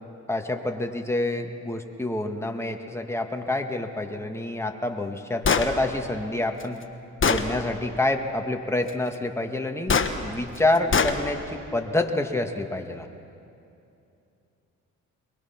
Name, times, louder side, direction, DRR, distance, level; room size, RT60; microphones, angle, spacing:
voice 1, 0.3-6.8 7.3-10.0 10.2-13.1, left 2 dB, 10° left, 4 dB, 1.8 m, -27 dB
Gunshot gunfire, 5.4-5.7 6.6-6.7 7.2-7.5 9.9-10.1 10.9-11.2, left 5 dB, 35° left, 1.4 m, -21 dB
23.0 x 20.5 x 5.9 m, 2.7 s
supercardioid pair, 65°, 34 cm